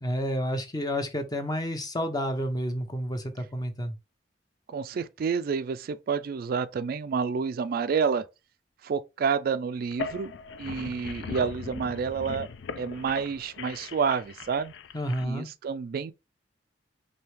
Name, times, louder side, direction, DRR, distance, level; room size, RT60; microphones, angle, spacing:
voice 1, 0.0-3.9 14.9-15.5, equal, 20° left, 0.7 m, -30 dB
voice 2, 4.7-8.3 8.8-10.3 10.6-12.5 12.8-14.7 15.2-16.1, right 6 dB, 55° right, 0.3 m, -29 dB
sound 1, 9.8-15.2, left 5 dB, 85° left, 0.4 m, -39 dB
4.6 x 2.7 x 3.3 m
head